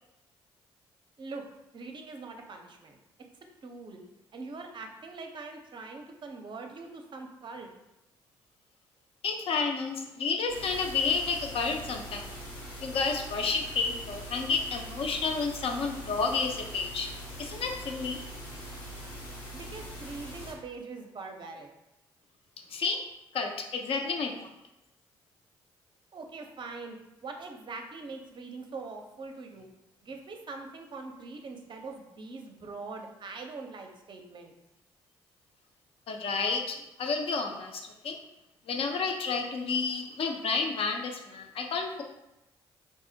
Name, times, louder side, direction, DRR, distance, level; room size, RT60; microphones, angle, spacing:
voice 1, 1.7-3.0 3.6-4.0 4.3-7.7 19.5-21.7 26.1-27.0 27.2-29.7 30.0-34.5, right 3 dB, 40° right, 4 dB, 0.5 m, -42 dB
voice 2, 9.2-12.3 12.8-17.1 17.4-18.2 22.7-23.0 23.3-24.5 36.1-38.2 38.7-42.0, left 4 dB, 55° left, 3 dB, 0.5 m, -30 dB
sound 1, 10.5-20.5, equal, 80° left, 0.8 m, -42 dB
3.5 x 2.0 x 2.6 m, 0.92 s
hypercardioid pair, 45°, 12 cm